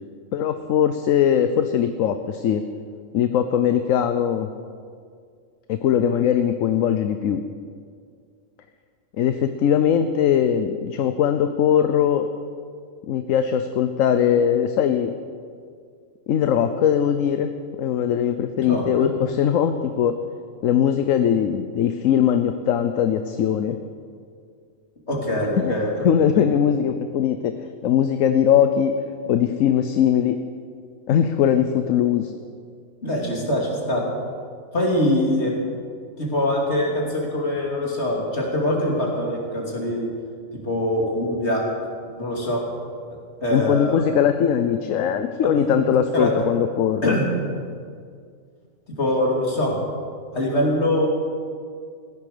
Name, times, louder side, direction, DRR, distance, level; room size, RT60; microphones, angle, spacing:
voice 1, 0.3-2.7 3.1-4.5 5.7-7.4 9.2-12.3 13.1-15.1 16.3-17.5 17.8-20.2 20.6-23.8 25.6-25.7 26.0-29.0 29.3-30.4 31.1-32.3 43.5-47.2, left 9 dB, 75° left, 9 dB, 1.1 m, -20 dB
voice 2, 25.1-25.9 33.0-34.0 34.7-35.5 36.2-40.1 40.6-41.6 42.1-42.6 43.4-44.0 45.6-46.3 47.0-47.2 49.0-49.7 50.3-51.1, left 1 dB, 55° left, -2 dB, 3.1 m, -23 dB
16.0 x 11.0 x 6.7 m, 2.1 s
omnidirectional pair, 1.4 m